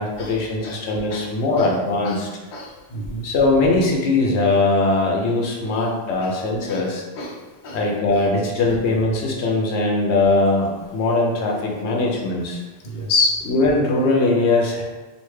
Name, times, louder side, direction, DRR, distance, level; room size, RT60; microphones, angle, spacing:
voice 1, 0.0-2.3 3.2-7.0 7.7-12.6 13.5-14.8, left 2 dB, 90° left, 0 dB, 0.9 m, -20 dB
voice 2, 2.5-3.2 5.7-5.8 6.2-6.3 6.7-6.9 7.2-7.4 7.6-7.8 12.8-13.3, left 3 dB, 55° left, -2 dB, 0.7 m, -26 dB
3.3 x 2.5 x 3.1 m, 1.2 s
omnidirectional pair, 1.1 m